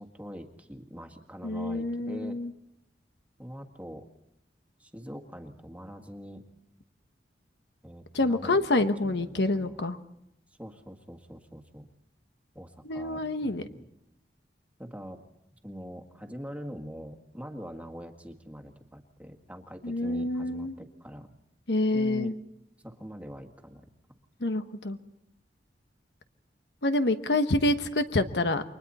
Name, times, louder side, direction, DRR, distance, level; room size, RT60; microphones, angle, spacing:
voice 1, 0.0-2.4 3.4-4.0 4.8-6.4 7.8-8.6 9.0-9.8 10.6-11.9 12.6-13.8 14.8-15.2 15.6-21.3 21.9-22.3 22.8-23.9, equal, 10° right, 4 dB, 1.8 m, -43 dB
voice 2, 1.4-2.5 8.1-10.0 12.8-13.6 19.8-20.7 21.7-22.3 24.4-25.0 26.8-28.6, left 2 dB, 70° left, 9 dB, 1.2 m, -27 dB
29.5 x 24.0 x 4.2 m, 0.81 s
head